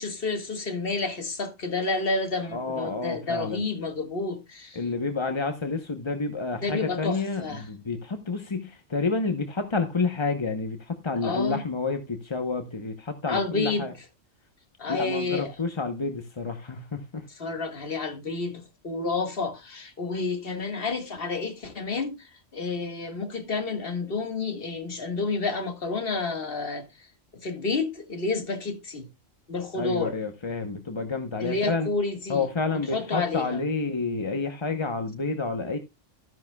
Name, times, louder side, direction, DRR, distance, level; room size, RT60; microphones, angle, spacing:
voice 1, 0.0-4.8 6.6-7.7 11.2-11.6 13.3-13.9 14.8-15.5 17.4-27.1 27.4-29.1 29.5-30.2 31.4-33.6, left 3 dB, 50° left, 1.9 m, -30 dB
voice 2, 2.5-3.6 4.7-13.9 14.9-17.2 29.7-31.9 32.3-35.8, left 4 dB, 25° left, 0.8 m, -29 dB
13.5 x 10.5 x 2.3 m
omnidirectional pair, 1.2 m